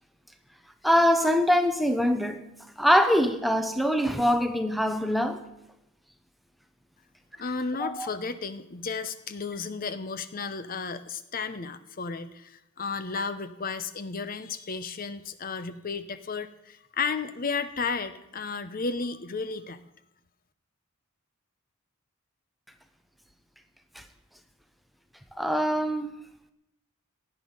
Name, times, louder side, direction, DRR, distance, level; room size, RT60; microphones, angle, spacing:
voice 1, 0.8-2.4 2.8-5.4 7.8-8.1 25.4-26.1, equal, ahead, 0.7 m, -23 dB
voice 2, 7.4-19.8, left 4 dB, 40° left, 0.7 m, -33 dB
16.5 x 9.9 x 5.4 m
head